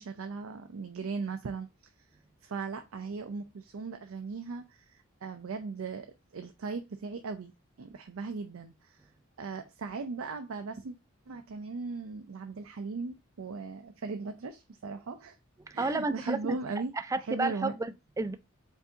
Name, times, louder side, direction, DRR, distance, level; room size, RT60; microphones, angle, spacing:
voice 1, 0.0-1.7 2.4-4.9 5.2-7.5 7.8-9.0 9.4-10.9 11.3-15.4 15.7-17.7, right 4 dB, 85° right, 0.5 m, -38 dB
voice 2, 15.8-16.6 17.1-18.4, right 2 dB, 15° right, 0.3 m, -31 dB
4.7 x 2.7 x 3.8 m
head